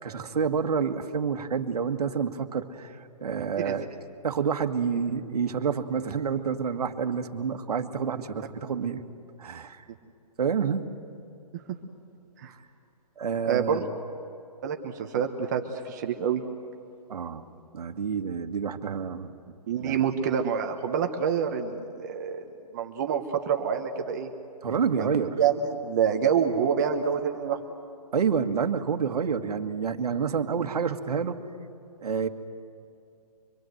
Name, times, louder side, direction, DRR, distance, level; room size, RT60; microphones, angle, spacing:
voice 1, 0.0-3.9 4.2-9.0 9.4-9.8 10.4-10.9 13.2-13.9 17.1-17.5 17.7-20.0 24.6-25.3 28.1-31.4 32.0-32.3, right 6 dB, 65° right, 7 dB, 1.7 m, -28 dB
voice 2, 13.5-13.8 14.6-16.4 19.7-22.4 22.7-24.3 25.0-25.1 25.4-27.6, right 7 dB, 25° right, 4 dB, 1.1 m, -27 dB
25.0 x 22.5 x 7.9 m, 2.6 s
hypercardioid pair, 165°, 21 cm